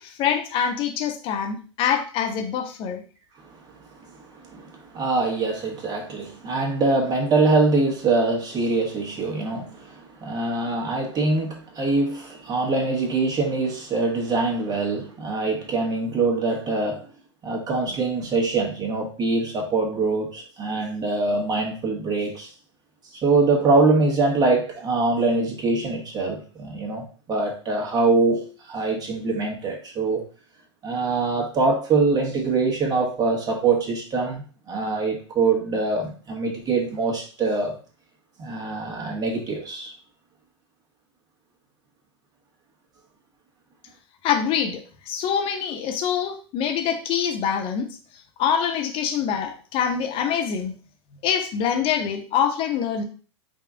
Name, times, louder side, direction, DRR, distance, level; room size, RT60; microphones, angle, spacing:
voice 1, 0.0-3.0 44.2-48.0 48.4-50.7 51.1-53.0, left 8 dB, 35° left, 5 dB, 0.9 m, -25 dB
voice 2, 4.0-17.1 17.4-22.5 23.2-30.2 30.8-37.8 38.4-39.9, right 3 dB, 25° right, 0 dB, 1.4 m, -24 dB
5.0 x 2.4 x 3.7 m, 0.38 s
hypercardioid pair, 100°, 15 cm